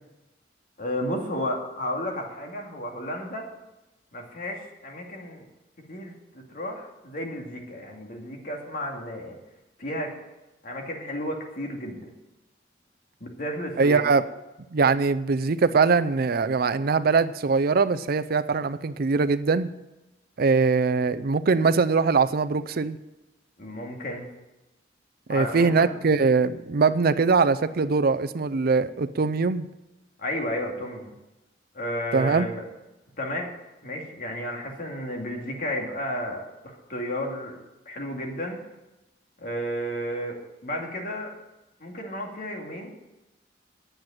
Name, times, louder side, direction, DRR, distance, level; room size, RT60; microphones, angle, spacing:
voice 1, 0.8-3.4 4.1-5.5 5.9-6.1 6.5-9.4 9.8-10.1 10.6-12.0 13.2-14.1 23.6-24.2 25.3-26.0 30.2-31.1 31.7-32.6 33.2-33.5 33.8-37.6 37.9-38.6 39.4-41.3 41.8-43.0, equal, 50° left, 1 dB, 2.4 m, -32 dB
voice 2, 13.8-14.2 14.7-19.7 20.4-23.0 25.3-29.7 32.1-32.5, right 4 dB, 55° right, 12 dB, 0.5 m, -22 dB
10.0 x 7.8 x 8.8 m, 1.0 s
head